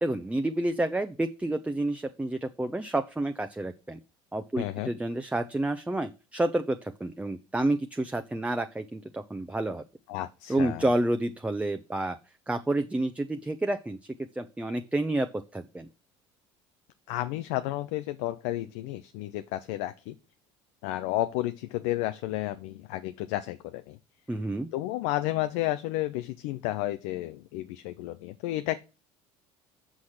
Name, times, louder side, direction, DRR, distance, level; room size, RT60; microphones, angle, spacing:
voice 1, 0.0-4.0 4.3-9.8 10.5-12.2 12.5-15.3 15.5-15.9 24.3-24.7, right 1 dB, 10° right, 7 dB, 0.8 m, -29 dB
voice 2, 4.6-4.9 10.1-10.9 17.1-20.2 20.8-24.0 24.7-28.8, left 15 dB, 75° left, 10 dB, 0.6 m, -32 dB
6.2 x 5.7 x 6.5 m, 0.30 s
supercardioid pair, 80°, 14 cm